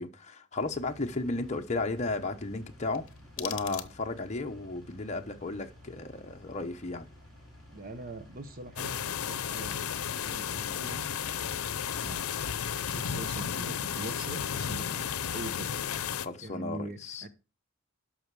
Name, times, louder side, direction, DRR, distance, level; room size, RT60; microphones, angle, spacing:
voice 1, 0.0-3.1 3.4-7.1 16.1-17.2, left 3 dB, 30° left, 0.9 m, -34 dB
Engine, 0.5-13.2, left 1 dB, ahead, 4.7 m, -53 dB
sound 1, 2.9-4.4, left 12 dB, 60° left, 0.9 m, -42 dB
voice 2, 7.7-9.0 9.2-9.9 10.1-11.0 12.0-12.3 12.9-15.7 16.4-17.3, right 2 dB, 40° right, 0.9 m, -42 dB
sound 2, 8.8-16.3, left 8 dB, 90° left, 0.6 m, -33 dB
12.0 x 5.9 x 4.8 m
head